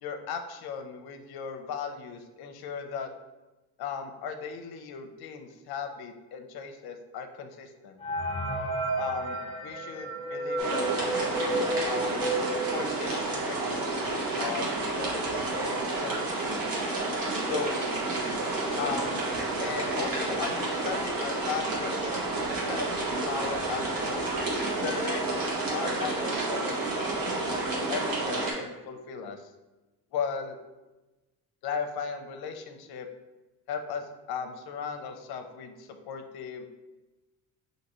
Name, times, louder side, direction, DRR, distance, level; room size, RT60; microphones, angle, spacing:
voice 1, 0.0-3.1 3.8-8.0 9.0-12.2 12.7-16.8 17.5-17.8 18.8-19.2 19.6-24.3 24.8-27.6 27.9-29.5 30.1-30.6 31.6-33.1 33.7-36.7, left 6 dB, 65° left, 6 dB, 0.6 m, -37 dB
sound 1, 8.0-13.4 13.9-14.0 14.2-14.3 15.1-15.2 15.5-15.9, right 2 dB, 15° left, 0.7 m, -32 dB
sound 2, 10.6-28.5, right 2 dB, 60° right, 1.1 m, -30 dB
5.3 x 2.7 x 3.0 m, 1.1 s
cardioid pair, 100°, 40 cm